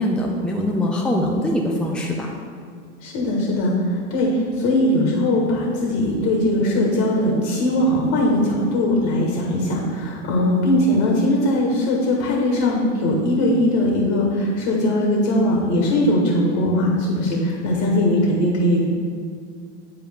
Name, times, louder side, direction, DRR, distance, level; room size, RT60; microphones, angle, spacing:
voice 1, 0.0-2.3, left 1 dB, 5° left, -1 dB, 0.6 m, -22 dB
voice 2, 3.0-18.8, left 1 dB, 55° left, -2 dB, 1.5 m, -20 dB
8.4 x 4.4 x 3.5 m, 2.1 s
hypercardioid pair, 90°, 34 cm